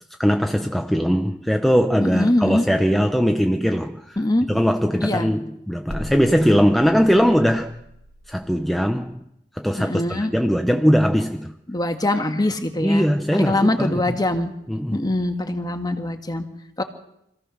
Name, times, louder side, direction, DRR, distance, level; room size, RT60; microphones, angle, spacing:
voice 1, 0.2-4.2 4.5-7.7 8.3-9.2 9.6-11.5 12.8-14.2 14.7-15.0, equal, ahead, 0.8 m, -20 dB
voice 2, 2.0-2.6 4.2-4.5 5.0-5.3 9.8-10.3 11.7-13.1 13.3-14.5 14.9-16.4 16.8-16.9, left 1 dB, 20° left, 1.7 m, -22 dB
sound 1, 5.9-9.0, left 1 dB, 60° right, 3.4 m, -40 dB
26.0 x 15.5 x 6.4 m
head